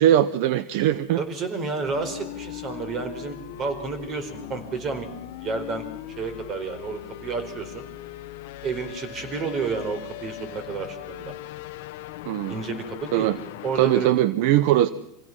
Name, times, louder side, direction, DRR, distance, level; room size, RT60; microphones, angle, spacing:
voice 1, 0.0-1.2 12.3-12.6 13.1-13.4 13.8-14.9, right 12 dB, 65° right, 16 dB, 0.7 m, -20 dB
voice 2, 1.2-5.1 5.4-5.8 6.2-7.8 8.6-11.3 12.5-13.3 13.6-14.1, right 4 dB, 40° right, 7 dB, 4.6 m, -30 dB
sound 1, 1.8-14.1, left 14 dB, 70° left, 0.8 m, -39 dB
25.5 x 16.5 x 6.1 m, 0.90 s
supercardioid pair, 110°, 0 cm